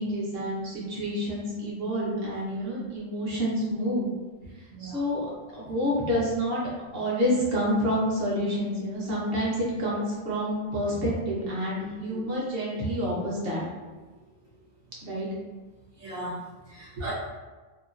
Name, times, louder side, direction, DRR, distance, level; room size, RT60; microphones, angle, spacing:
voice 1, 0.0-4.1 4.8-5.3 5.5-6.6 6.9-13.6 15.0-15.3, equal, 50° right, -6 dB, 1.0 m, -28 dB
voice 2, 4.7-5.0 12.1-12.3 16.0-17.1, right 1 dB, 85° right, -8 dB, 1.4 m, -37 dB
2.9 x 2.2 x 2.4 m, 1.3 s
omnidirectional pair, 1.4 m